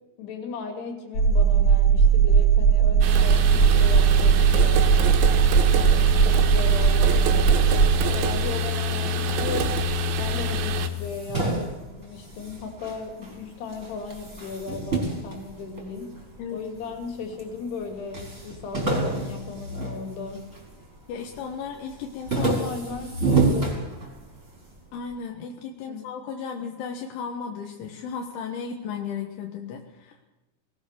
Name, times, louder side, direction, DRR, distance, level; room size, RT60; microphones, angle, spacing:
voice 1, 0.2-5.3 5.8-9.8 10.2-11.7 12.0-16.2 16.5-20.4 22.3-23.7 24.0-24.1 25.9-26.1, left 4 dB, 60° left, 5 dB, 4.7 m, -36 dB
sound 1, 1.1-7.9, right 7 dB, 25° left, 3.6 m, -18 dB
sound 2, 3.0-10.9, left 1 dB, 75° right, 3.7 m, -25 dB
sound 3, 10.8-13.4 13.7-16.2 16.8-17.5 17.8-17.9 18.1-20.7 21.1-21.5 21.9-24.5, right 3 dB, 15° right, 4.5 m, -28 dB
voice 2, 21.1-22.6 24.9-30.3, left 6 dB, 80° left, 3 dB, 3.8 m, -35 dB
20.0 x 20.0 x 6.8 m, 1.1 s
omnidirectional pair, 5.5 m